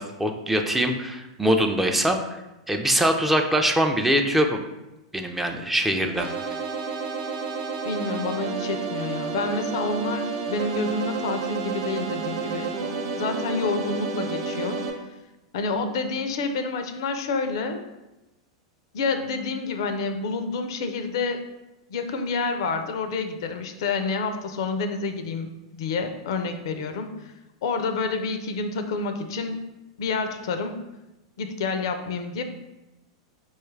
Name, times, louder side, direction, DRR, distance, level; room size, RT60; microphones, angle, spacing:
voice 1, 0.0-2.4 2.7-4.6 5.1-6.3, right 1 dB, 5° right, 4 dB, 0.3 m, -23 dB
sound 1, 6.2-14.9, right 4 dB, 60° right, 0.6 m, -30 dB
voice 2, 7.8-12.7 13.2-14.8 15.5-17.8 18.9-21.4 21.9-27.1 27.6-29.6 30.0-30.8 31.4-32.4, left 4 dB, 65° left, 8 dB, 0.4 m, -28 dB
4.3 x 2.3 x 3.2 m, 0.98 s
hypercardioid pair, 100°, 3 cm